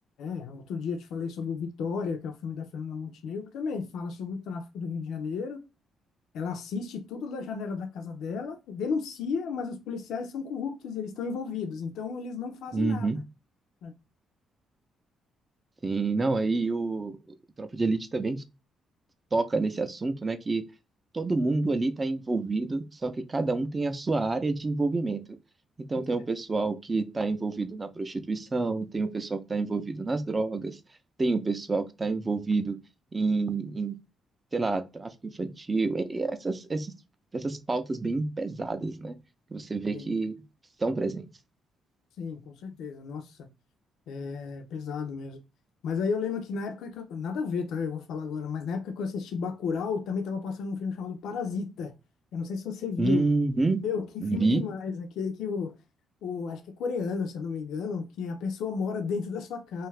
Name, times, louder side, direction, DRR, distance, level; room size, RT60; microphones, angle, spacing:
voice 1, 0.2-5.6 6.3-13.1 13.8-14.0 25.9-26.1 39.9-40.1 42.2-43.4 44.1-45.4 45.8-51.9 52.3-53.2 53.8-55.7 56.2-59.9, left 5 dB, 80° left, 0.4 m, -33 dB
voice 2, 12.7-13.2 15.8-18.4 19.3-20.6 21.1-25.4 25.9-30.8 31.2-32.8 33.1-34.0 34.5-36.9 37.3-39.1 39.5-40.3 40.8-41.3 53.0-53.8 54.2-54.7, right 3 dB, 25° right, 0.4 m, -28 dB
2.6 x 2.3 x 3.1 m
cardioid pair, 90°, 0 cm